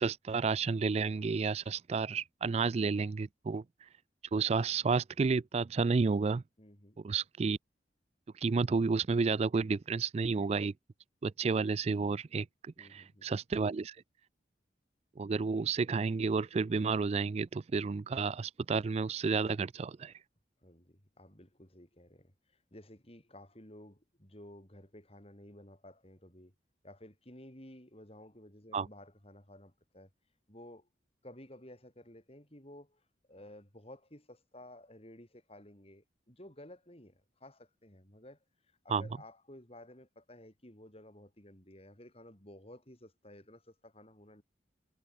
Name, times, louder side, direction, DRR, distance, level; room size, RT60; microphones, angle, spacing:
voice 1, 0.0-3.6 4.3-6.4 7.0-7.6 8.4-10.7 11.2-13.9 15.2-20.1 28.7-28.9 38.9-39.0, right 4 dB, 35° right, 0.3 m, -31 dB
voice 2, 6.6-7.0 12.8-13.3 20.6-26.5 26.8-30.1 30.5-30.9 31.2-44.4, left 1 dB, 35° left, 7.4 m, -54 dB
head